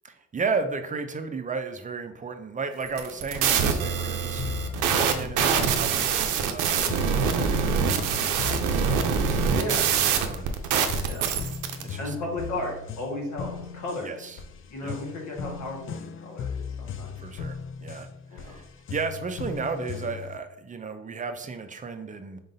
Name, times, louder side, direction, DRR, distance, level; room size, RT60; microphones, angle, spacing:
voice 1, 0.0-11.5 11.8-12.2 14.0-14.4 14.8-15.0 17.2-18.6 18.9-22.4, right 4 dB, 25° right, 7 dB, 0.4 m, -35 dB
sound 1, 2.9-11.8, right 7 dB, 90° right, 0.5 m, -24 dB
sound 2, 4.4-20.4, left 6 dB, 45° left, 0.4 m, -37 dB
voice 2, 9.5-9.9 11.0-11.3 12.0-14.1 14.7-17.2 18.3-18.6, left 1 dB, 75° left, -1 dB, 1.4 m, -34 dB
3.9 x 3.8 x 2.6 m, 0.77 s
cardioid pair, 90°, 30 cm